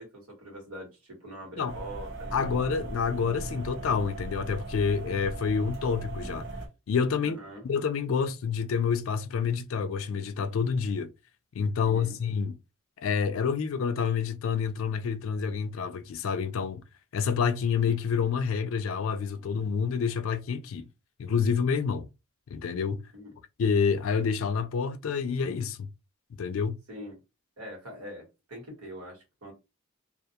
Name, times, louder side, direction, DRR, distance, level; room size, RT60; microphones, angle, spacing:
voice 1, 0.0-2.9 7.2-7.6 11.8-12.1 23.1-23.3 26.9-27.2 27.6-29.5, equal, 80° right, 1.3 m, -43 dB
sound 1, 1.7-6.7, right 2 dB, 50° right, 0.8 m, -38 dB
voice 2, 2.3-6.5 6.9-7.4 7.6-11.1 11.5-12.6 13.0-16.8 17.1-20.9 21.2-22.1 22.5-23.0 23.6-25.9 26.4-26.8, left 6 dB, 60° left, 0.3 m, -28 dB
2.4 x 2.3 x 2.7 m
head